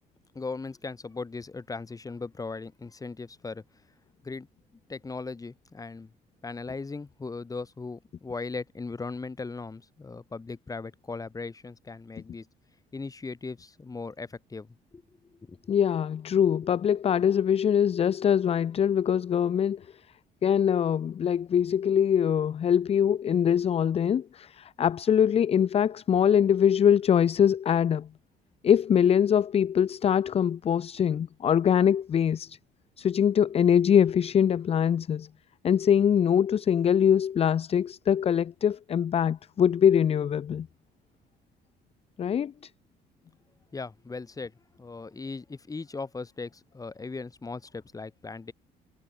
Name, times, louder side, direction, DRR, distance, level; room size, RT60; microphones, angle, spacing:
voice 1, 0.3-3.6 4.2-4.5 4.9-6.1 6.4-12.5 12.9-15.0 15.3-15.8 43.7-44.5 44.8-48.5, left 4 dB, 20° left, 3.2 m, -38 dB
voice 2, 15.7-19.9 20.4-28.1 28.6-32.6 33.0-35.3 35.6-40.7 42.2-42.7, left 8 dB, 35° left, 0.6 m, -23 dB
cardioid pair, 110°, 17 cm